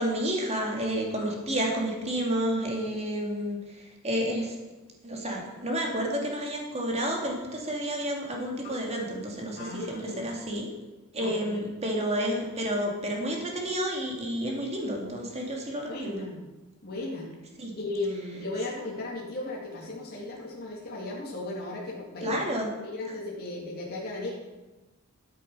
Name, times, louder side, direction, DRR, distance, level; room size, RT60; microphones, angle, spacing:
voice 1, 0.0-3.6 4.0-4.5 5.0-10.7 11.1-16.2 17.6-17.7 22.2-22.7, equal, 30° right, 0 dB, 2.5 m, -30 dB
voice 2, 9.6-10.3 11.2-11.6 15.9-16.4 16.8-17.3 17.8-22.4 22.8-24.3, left 2 dB, 45° left, -5 dB, 2.4 m, -35 dB
13.0 x 7.5 x 5.4 m, 1.2 s
head